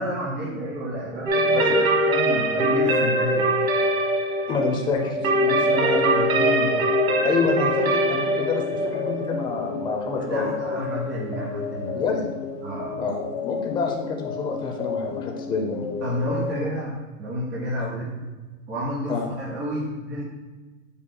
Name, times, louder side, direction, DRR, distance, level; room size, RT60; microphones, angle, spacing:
voice 1, 0.0-1.8 2.0-3.5 5.4-6.8 10.2-12.0 12.6-13.1 16.0-18.3 18.7-20.2, equal, 25° right, -8 dB, 1.9 m, -30 dB
sound 1, 1.3-10.9, right 1 dB, 80° right, 1.3 m, -23 dB
voice 2, 4.5-6.0 7.2-10.5 11.9-12.3 13.0-15.9 17.8-17.9 19.1-19.3, left 5 dB, 10° left, 1 dB, 0.6 m, -28 dB
sound 2, 4.9-16.6, left 5 dB, 65° left, 1.1 m, -32 dB
7.6 x 6.5 x 2.2 m, 1.3 s
hypercardioid pair, 140°, 40 cm